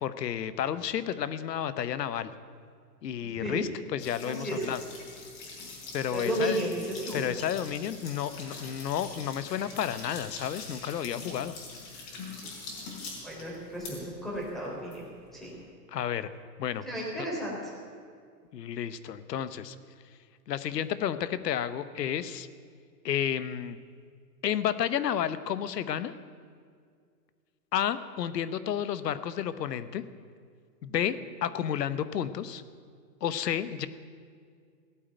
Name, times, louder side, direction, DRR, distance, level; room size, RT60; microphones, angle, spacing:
voice 1, 0.0-2.3 3.0-4.8 5.9-6.6 7.1-11.5 15.9-16.3 16.6-16.8 18.5-19.8 20.5-22.5 23.0-23.8 24.4-26.1 27.7-30.0 30.8-32.6 33.2-33.9, left 9 dB, 70° left, 14 dB, 1.1 m, -31 dB
sound 1, 4.0-15.6, left 3 dB, 35° left, 4.7 m, -44 dB
voice 2, 4.2-4.6 6.1-7.2 13.2-15.1 15.4-15.5 16.9-17.6, equal, ahead, -4 dB, 3.7 m, -33 dB
17.0 x 8.6 x 9.0 m, 2.1 s
hypercardioid pair, 145°, 50 cm